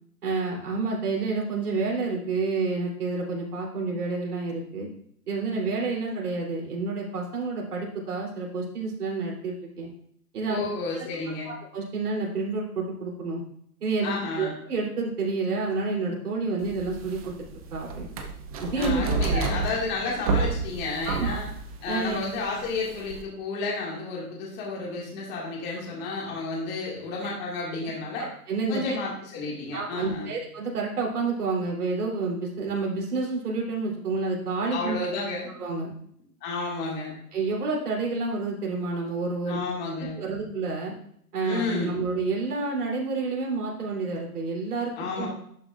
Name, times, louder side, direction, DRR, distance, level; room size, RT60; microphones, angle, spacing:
voice 1, 0.2-4.9 5.3-9.9 10.3-10.6 10.9-11.0 11.4-13.4 13.8-17.3 17.7-18.1 18.6-19.5 21.0-21.4 21.9-22.2 28.2-29.0 29.7-35.0 35.6-35.9 37.3-39.6 40.1-40.9 41.3-45.3, right 3 dB, 70° right, -2 dB, 3.4 m, -29 dB
voice 2, 10.5-11.5 14.0-14.5 18.8-21.5 21.8-28.3 28.7-30.3 34.7-35.5 36.4-37.1 39.5-40.2 41.4-42.0 45.0-45.3, left 3 dB, 20° left, -3 dB, 2.1 m, -31 dB
sound 1, 16.6-23.2, right 4 dB, 25° right, 0.6 m, -30 dB
11.5 x 6.6 x 2.5 m, 0.66 s
hypercardioid pair, 145°, 47 cm